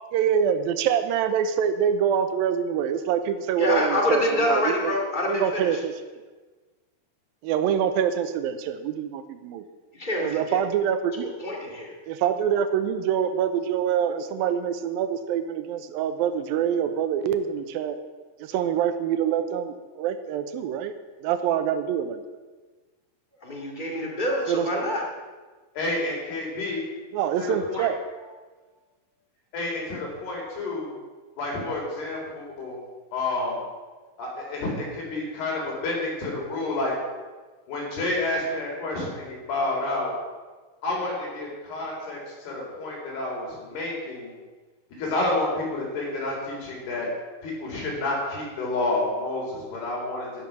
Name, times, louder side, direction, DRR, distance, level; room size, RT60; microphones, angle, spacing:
voice 1, 0.1-5.0 5.3-5.9 7.4-9.6 10.2-11.3 12.1-18.0 18.4-20.9 21.2-22.2 24.5-24.9 27.1-28.0, right 8 dB, 80° right, 10 dB, 2.5 m, -25 dB
voice 2, 3.6-5.7 9.9-10.6 11.2-11.9 23.4-25.0, left 1 dB, 20° left, -1 dB, 1.2 m, -26 dB
voice 3, 25.8-26.8 27.7-27.9 29.5-30.9 31.4-32.8 33.1-33.6 34.2-36.9 37.7-40.1 40.8-44.4 45.0-47.1 47.4-50.3, left 2 dB, 85° left, -3 dB, 5.9 m, -29 dB
12.0 x 11.5 x 6.0 m, 1.3 s
omnidirectional pair, 4.5 m